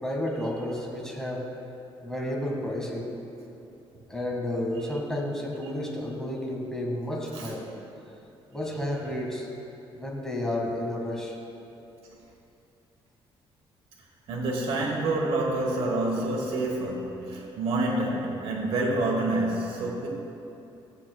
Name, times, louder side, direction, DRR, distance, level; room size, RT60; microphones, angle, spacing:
voice 1, 0.0-1.4 2.0-3.1 4.1-7.7 8.5-9.5 9.9-11.4, left 1 dB, 5° left, -2 dB, 1.7 m, -31 dB
voice 2, 14.3-20.1, right 2 dB, 70° right, -1 dB, 1.1 m, -27 dB
16.0 x 7.3 x 2.2 m, 2.9 s
cardioid pair, 105°, 10 cm